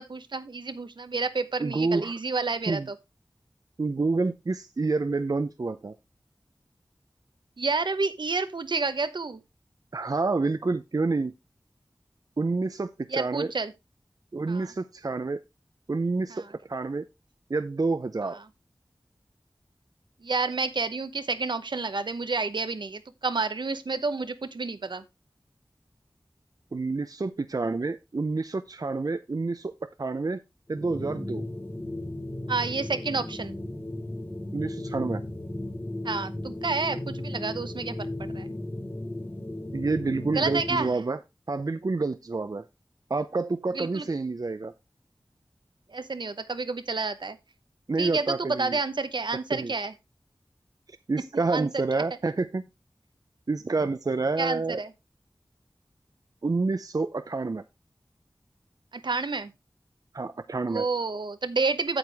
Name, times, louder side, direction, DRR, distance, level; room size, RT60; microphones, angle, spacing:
voice 1, 0.0-3.0 7.6-9.4 13.1-13.7 14.5-14.7 16.3-16.5 20.2-25.0 32.5-33.6 36.0-38.1 38.3-38.5 40.3-41.0 43.7-44.1 45.9-47.4 48.0-49.9 51.5-51.8 54.4-54.9 58.9-59.5 60.7-62.0, right 3 dB, 75° right, 0.9 m, -29 dB
voice 2, 1.6-2.1 2.7-2.9 3.8-5.9 9.9-11.3 12.4-13.5 14.3-15.4 15.9-16.4 16.7-17.1 17.5-18.4 26.7-29.7 30.0-30.4 30.7-31.4 34.5-35.2 39.7-41.2 41.5-42.7 43.1-44.7 47.9-48.8 49.5-49.7 51.1-52.6 53.5-54.8 56.4-57.6 60.1-60.9, right 3 dB, 50° right, 0.6 m, -28 dB
sound 1, 30.7-40.9, left 1 dB, 25° left, 1.3 m, -35 dB
8.9 x 8.1 x 3.4 m
wide cardioid pair, 65°, 8 cm